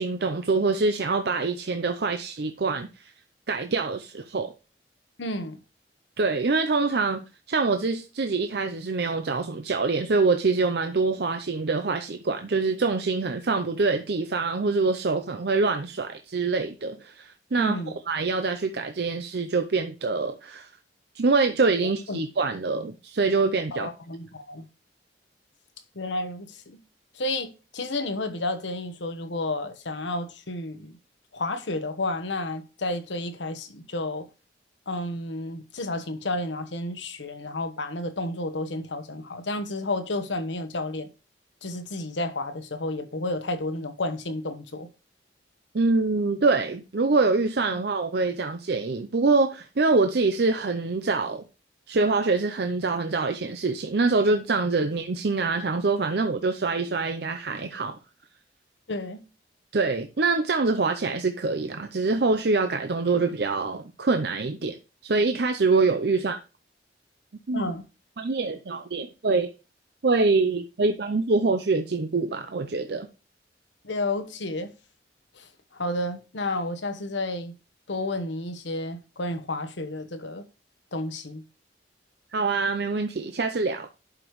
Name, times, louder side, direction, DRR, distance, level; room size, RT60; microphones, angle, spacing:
voice 1, 0.0-3.1 3.5-4.5 6.2-17.8 18.1-20.7 21.1-23.9 45.7-51.4 51.9-58.0 59.7-64.8 65.0-66.4 67.5-67.7 68.2-69.5 70.0-73.1 82.3-83.9, right 3 dB, 60° right, 0.6 m, -25 dB
voice 2, 5.2-5.6 17.6-17.9 21.8-22.2 23.7-24.7 25.9-26.8 27.1-31.0 31.3-34.3 34.9-41.1 41.6-44.9 58.9-59.2 67.5-67.8 73.8-74.7 75.4-77.5 77.9-80.5 80.9-81.4, left 2 dB, 90° left, 1.1 m, -31 dB
11.0 x 5.1 x 3.1 m
head